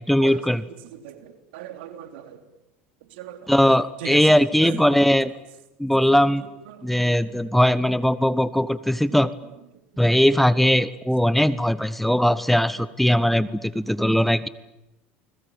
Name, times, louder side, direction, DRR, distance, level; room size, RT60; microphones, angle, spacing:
voice 1, 0.1-0.6 3.5-5.3 5.8-6.4 6.8-9.3 10.0-14.5, equal, 5° left, 16 dB, 1.0 m, -19 dB
voice 2, 0.8-2.4 3.1-3.5 3.8-4.3 4.6-4.8 6.7-7.2, right 11 dB, 75° right, 8 dB, 3.5 m, -39 dB
29.5 x 21.0 x 8.9 m, 0.96 s
hypercardioid pair, 90°, 6 cm